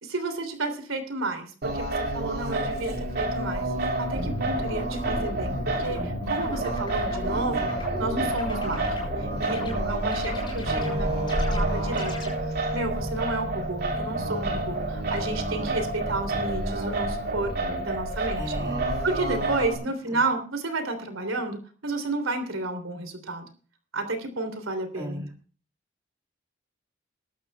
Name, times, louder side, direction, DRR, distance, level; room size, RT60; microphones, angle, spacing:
voice 1, 0.0-3.6 4.0-17.5 17.8-18.5 19.0-23.5 23.9-25.2, right 2 dB, 85° right, 8 dB, 3.2 m, -31 dB
Singing, 1.6-19.7, right 2 dB, 50° right, 3.2 m, -29 dB
sound 1, 4.1-12.3, left 1 dB, 20° left, 6.7 m, -36 dB
Wind instrument woodwind instrument, 10.6-16.7, right 1 dB, 35° right, 2.5 m, -36 dB
voice 2, 10.7-11.1 18.4-18.9 25.0-25.3, equal, 15° right, 0 dB, 2.0 m, -35 dB
21.5 x 12.0 x 2.3 m, 0.40 s
head